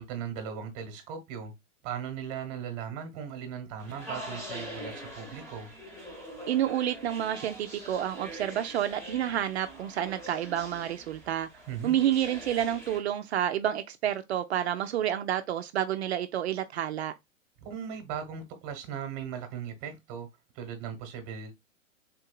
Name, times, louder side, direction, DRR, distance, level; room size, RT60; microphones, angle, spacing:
voice 1, 0.0-1.5 1.8-5.7 11.7-12.0 17.6-20.3 20.5-21.5, right 8 dB, 30° right, 1.0 m, -38 dB
sound 1, 3.8-13.0, equal, 5° left, 1.0 m, -43 dB
voice 2, 6.5-11.5 11.8-17.1, right 11 dB, 55° right, 0.4 m, -29 dB
3.7 x 2.7 x 2.3 m
hypercardioid pair, 130°, 40 cm